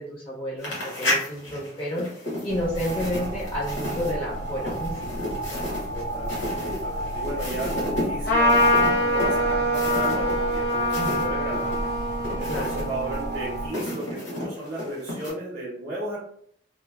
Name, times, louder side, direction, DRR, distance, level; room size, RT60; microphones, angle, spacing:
voice 1, 0.0-2.1 2.4-5.7 10.9-11.2 12.5-12.8, left 1 dB, 30° left, -6 dB, 0.4 m, -31 dB
sound 1, 0.6-11.3 11.5-15.3, left 1 dB, 85° left, 1.2 m, -33 dB
sound 2, 2.5-13.7, right 1 dB, 85° right, 0.4 m, -31 dB
voice 2, 5.9-11.7 12.4-16.2, right 1 dB, 35° right, -5 dB, 0.6 m, -34 dB
Trumpet, 8.3-14.1, equal, 60° left, 0.8 m, -25 dB
3.1 x 2.0 x 2.2 m, 0.65 s
head